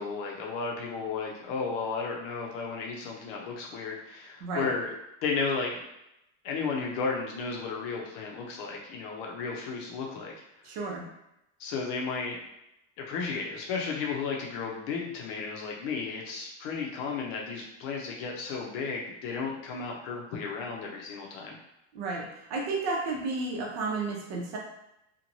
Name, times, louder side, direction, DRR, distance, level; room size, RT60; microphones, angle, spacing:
voice 1, 0.0-4.9 5.2-5.8 6.4-10.3 11.6-12.4 13.0-21.6, left 4 dB, 50° left, -1 dB, 0.5 m, -33 dB
voice 2, 10.6-11.0 21.9-24.6, right 3 dB, 65° right, 0 dB, 0.8 m, -32 dB
3.0 x 2.2 x 2.6 m, 0.86 s
cardioid pair, 180°, 37 cm